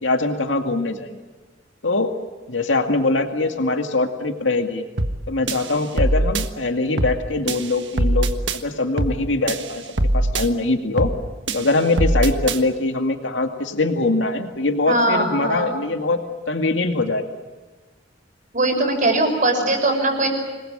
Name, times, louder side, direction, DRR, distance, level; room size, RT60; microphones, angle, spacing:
voice 1, 0.0-1.1 1.8-2.2 2.5-4.8 5.3-9.8 10.1-11.1 11.5-16.2 16.5-17.2, left 2 dB, 85° left, 5 dB, 2.2 m, -22 dB
sound 1, 5.0-5.2 5.5-6.5 7.0-7.2 7.5-8.6 9.0-9.2 9.5-10.5 11.0-11.2 11.5-12.6, right 1 dB, 70° right, 1.5 m, -22 dB
voice 2, 14.9-15.7 18.5-20.3, right 2 dB, 45° right, 4 dB, 6.0 m, -20 dB
26.5 x 21.5 x 8.9 m, 1.3 s
head